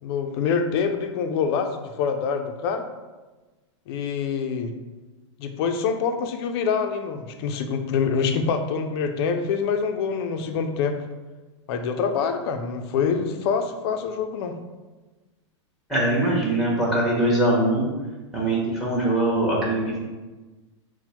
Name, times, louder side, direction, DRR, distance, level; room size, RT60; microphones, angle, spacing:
voice 1, 0.0-2.8 3.9-4.7 5.4-11.0 11.7-14.5, left 6 dB, 55° left, 6 dB, 0.5 m, -25 dB
voice 2, 15.9-17.8 18.3-20.0, right 1 dB, ahead, -4 dB, 1.1 m, -22 dB
4.2 x 2.2 x 4.3 m, 1.2 s
supercardioid pair, 135°, 16 cm